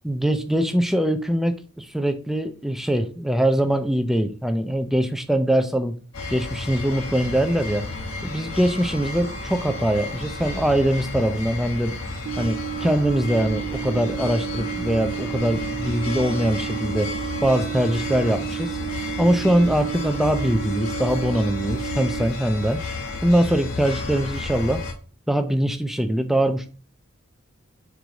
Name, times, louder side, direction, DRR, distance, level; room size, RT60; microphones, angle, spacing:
voice 1, 0.0-5.9 6.3-7.8 8.2-11.9 12.4-17.1 17.4-18.8 19.2-22.8 23.2-24.8 25.3-26.7, right 1 dB, ahead, 8 dB, 0.5 m, -22 dB
sound 1, 6.1-24.9, left 3 dB, 75° left, 1.2 m, -32 dB
sound 2, 12.3-22.3, right 15 dB, 60° right, 0.4 m, -32 dB
4.7 x 4.0 x 5.0 m, 0.38 s
head